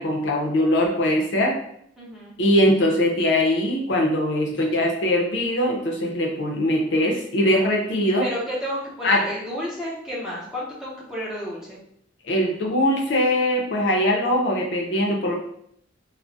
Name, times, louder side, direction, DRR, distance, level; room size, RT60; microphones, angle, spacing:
voice 1, 0.0-1.6 2.4-8.2 9.0-9.3 12.2-15.3, left 1 dB, 65° left, 1 dB, 0.5 m, -21 dB
voice 2, 2.0-2.3 8.2-11.8, equal, 5° right, -7 dB, 0.7 m, -31 dB
2.3 x 2.0 x 3.8 m, 0.68 s
head